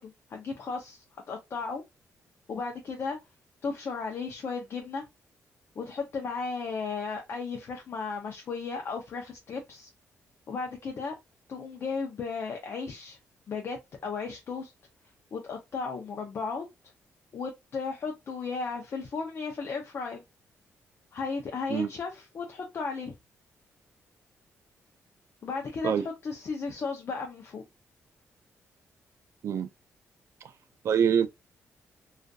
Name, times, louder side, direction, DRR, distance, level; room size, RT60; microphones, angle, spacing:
voice 1, 0.0-1.8 2.5-3.2 3.6-5.0 5.8-9.9 10.5-11.1 11.5-13.2 13.5-14.7 15.3-16.7 17.3-20.2 21.1-23.1 25.4-27.6, left 4 dB, 50° left, 0.5 m, -35 dB
voice 2, 30.8-31.3, right 8 dB, 65° right, 0.4 m, -24 dB
2.5 x 2.4 x 2.2 m
cardioid pair, 95°, 5 cm